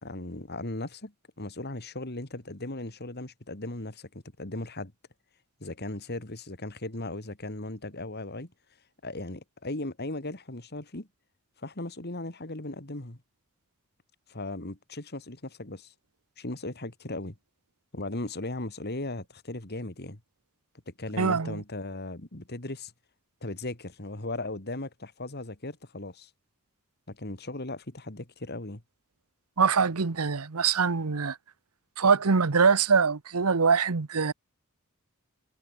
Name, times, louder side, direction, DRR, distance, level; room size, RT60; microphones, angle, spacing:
voice 1, 0.0-4.9 5.6-8.5 9.0-11.1 11.6-13.2 14.3-15.9 16.4-17.4 17.9-20.2 20.9-22.9 23.4-26.3 27.1-28.8, left 2 dB, 50° left, 2.8 m, -37 dB
voice 2, 21.2-21.6 29.6-31.4 32.0-34.3, right 5 dB, 90° right, 1.0 m, -23 dB
head